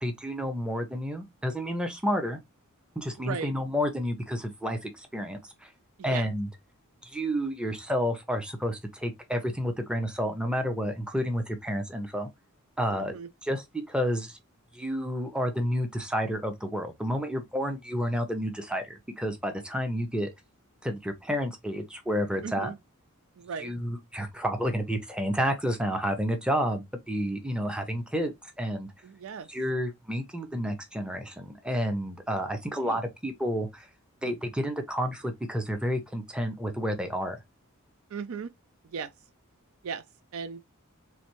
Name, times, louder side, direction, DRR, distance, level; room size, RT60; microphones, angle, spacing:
voice 1, 0.0-2.4 3.0-5.7 6.0-6.5 7.0-12.3 12.8-13.1 13.4-14.4 14.7-20.3 20.8-22.7 23.6-28.9 29.5-33.9 34.2-37.4, equal, 5° right, 0.6 m, -30 dB
voice 2, 3.2-3.5 6.0-6.3 12.9-13.3 22.4-22.8 23.4-23.7 29.0-29.5 32.7-33.0 38.1-38.5 38.8-39.1 39.8-40.0 40.3-40.7, right 6 dB, 70° right, 0.4 m, -37 dB
3.2 x 2.6 x 2.9 m
head